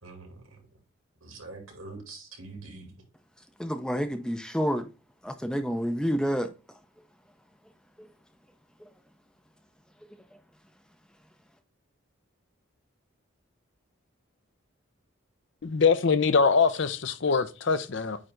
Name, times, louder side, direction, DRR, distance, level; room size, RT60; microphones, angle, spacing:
voice 1, 0.0-0.7 1.2-3.0, right 3 dB, 85° right, 2.7 m, -44 dB
voice 2, 3.6-4.9 5.2-6.5 8.0-8.1 8.8-8.9, equal, 5° left, 0.5 m, -29 dB
voice 3, 15.6-18.2, left 5 dB, 60° left, 0.6 m, -23 dB
9.0 x 3.3 x 3.8 m
head